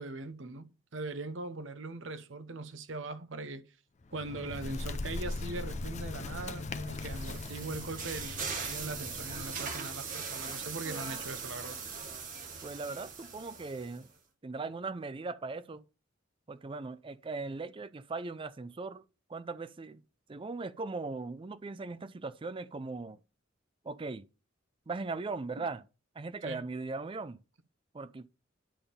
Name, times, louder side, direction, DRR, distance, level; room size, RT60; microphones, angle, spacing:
voice 1, 0.0-3.6 4.1-11.8 25.6-25.7 26.4-26.6, right 2 dB, 70° right, 0.8 m, -41 dB
Bird, 4.0-9.8, left 2 dB, 35° left, 0.5 m, -40 dB
sound 1, 6.5-14.1, right 5 dB, 45° right, 1.7 m, -40 dB
voice 2, 12.6-14.1 14.4-15.8 16.5-19.0 19.3-20.0 20.3-23.2 23.8-24.3 24.9-25.8 26.2-27.4 27.9-28.3, right 3 dB, 25° right, 0.4 m, -39 dB
10.0 x 3.6 x 6.9 m
head